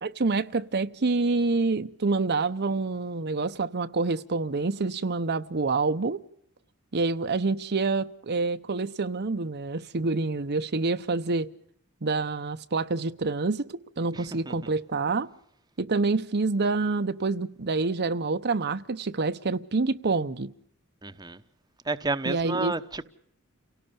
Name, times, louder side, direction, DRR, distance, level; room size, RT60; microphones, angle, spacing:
voice 1, 0.0-6.2 6.9-11.5 12.0-15.3 15.8-20.5 22.3-22.7, right 3 dB, 50° right, 0.9 m, -27 dB
voice 2, 14.1-14.5 21.0-21.4 21.8-23.0, right 3 dB, 20° right, 1.0 m, -31 dB
29.5 x 18.0 x 7.0 m
head